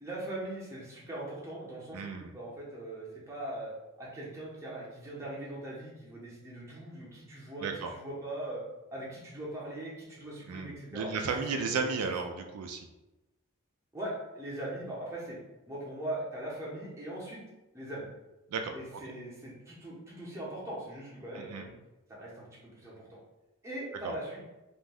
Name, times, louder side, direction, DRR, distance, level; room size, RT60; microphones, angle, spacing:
voice 1, 0.0-3.7 4.0-8.6 8.9-11.1 11.7-12.0 13.9-15.4 15.7-17.4 17.7-18.1 18.7-21.7 22.2-22.5 22.8-23.2 23.6-24.4, right 1 dB, 15° right, -6 dB, 0.7 m, -40 dB
voice 2, 1.9-2.3 7.6-7.9 10.5-12.9 18.5-18.7 21.3-21.6 24.0-24.1, right 5 dB, 80° right, 4 dB, 0.3 m, -34 dB
2.5 x 2.2 x 3.3 m, 1.0 s
head